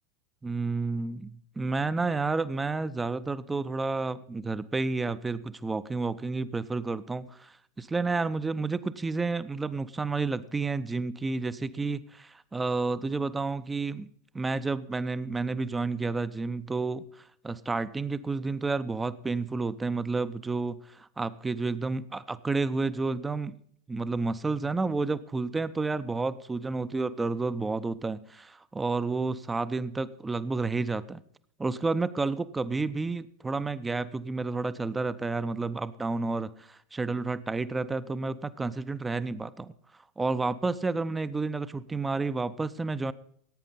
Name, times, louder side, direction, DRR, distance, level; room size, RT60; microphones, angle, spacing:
voice 1, 0.4-14.1 14.3-23.5 23.9-31.2 31.6-39.7 40.2-43.1, right 3 dB, 10° right, 15 dB, 0.5 m, -30 dB
16.0 x 9.0 x 4.1 m, 0.63 s
figure-of-eight pair, 90°, 0 cm